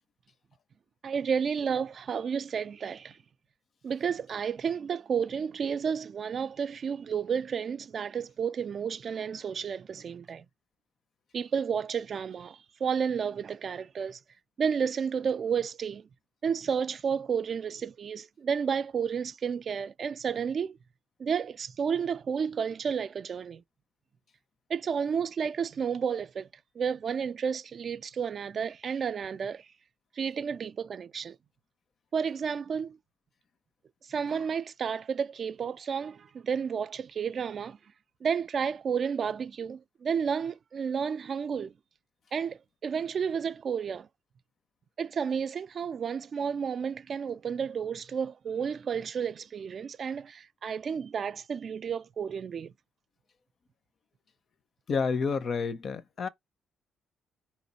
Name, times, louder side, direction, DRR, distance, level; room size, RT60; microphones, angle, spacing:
voice 1, 1.0-3.2 3.8-10.4 11.3-14.2 14.6-16.0 16.4-20.8 21.2-23.6 24.7-26.5 26.8-29.6 30.2-31.4 32.1-33.0 34.1-37.8 38.2-41.7 42.3-44.1 45.0-52.7, right 7 dB, 50° right, 0.3 m, -31 dB
voice 2, 54.9-56.3, left 5 dB, 50° left, 0.6 m, -29 dB
4.2 x 3.1 x 4.1 m
cardioid pair, 90°, 0 cm